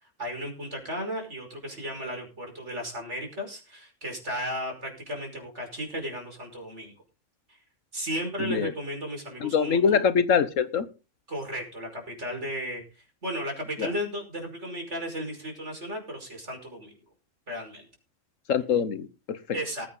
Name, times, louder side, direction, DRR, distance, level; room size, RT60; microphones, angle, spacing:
voice 1, 0.2-6.9 7.9-10.1 11.3-12.8 13.2-16.9 17.5-17.9 19.5-19.9, equal, 65° right, 2 dB, 5.7 m, -34 dB
voice 2, 8.4-8.7 9.4-10.8 13.8-13.9 18.5-19.4, left 6 dB, 90° left, 14 dB, 1.5 m, -24 dB
19.5 x 8.8 x 3.9 m, 0.32 s
omnidirectional pair, 1.3 m